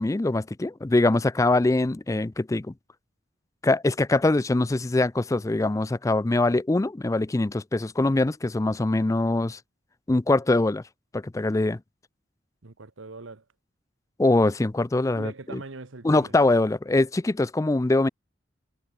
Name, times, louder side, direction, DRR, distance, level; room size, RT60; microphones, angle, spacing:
voice 1, 0.0-2.7 3.6-9.6 10.1-10.8 11.1-11.8 14.2-15.6 16.0-18.1, left 2 dB, 15° left, 0.4 m, -23 dB
voice 2, 12.6-13.4 15.1-16.3, right 3 dB, 90° right, 1.3 m, -41 dB
head